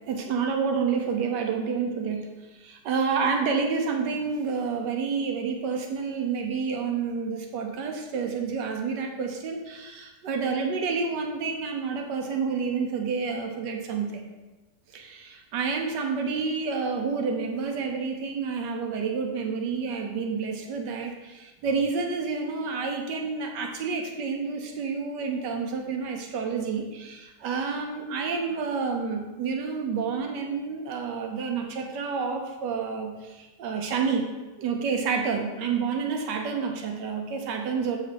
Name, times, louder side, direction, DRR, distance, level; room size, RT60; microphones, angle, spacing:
voice 1, 0.1-2.3 2.6-14.2 14.9-34.3 34.6-38.0, right 5 dB, 90° right, 3 dB, 1.5 m, -29 dB
7.4 x 4.5 x 5.0 m, 1.2 s
omnidirectional pair, 1.8 m